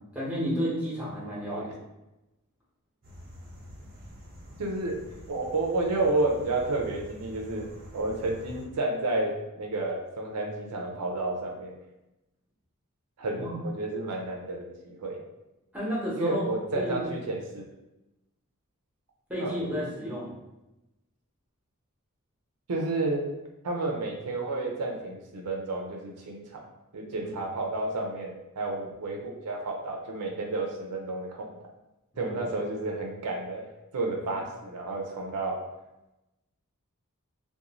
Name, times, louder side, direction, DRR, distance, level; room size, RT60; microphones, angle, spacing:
voice 1, 0.1-1.6 13.3-13.5 15.7-16.4 16.7-17.1 19.3-20.3 27.2-27.4 32.1-32.4, equal, 5° right, -7 dB, 0.9 m, -32 dB
sound 1, 3.0-8.7, equal, 45° right, 0.7 m, -47 dB
voice 2, 4.6-5.0 5.3-7.7 7.9-11.7 13.2-15.2 16.2-17.6 19.4-19.6 22.7-23.3 23.6-26.6 26.9-31.5 32.2-33.6 33.9-35.6, right 2 dB, 85° right, 1 dB, 0.5 m, -31 dB
2.4 x 2.2 x 2.9 m, 0.97 s
head